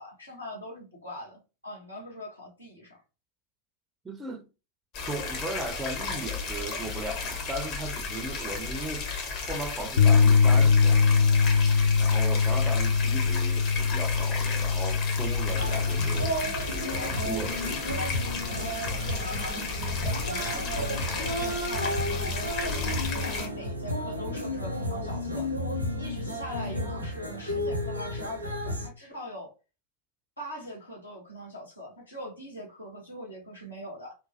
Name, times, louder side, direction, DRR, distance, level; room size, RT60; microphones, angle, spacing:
voice 1, 0.0-3.0 20.2-25.5 26.0-29.5 30.4-34.2, equal, 80° left, 1.0 m, -41 dB
voice 2, 4.0-4.4 5.1-9.1 9.5-11.4 12.0-16.4 16.7-18.1, right 2 dB, 10° right, 0.4 m, -37 dB
sound 1, 4.9-23.5, left 4 dB, 40° left, 0.9 m, -34 dB
Bass guitar, 10.0-16.2, left 5 dB, 65° left, 0.3 m, -22 dB
sound 2, 15.5-28.9, equal, 85° right, 0.6 m, -32 dB
2.9 x 2.2 x 2.7 m
figure-of-eight pair, 90°, 0 cm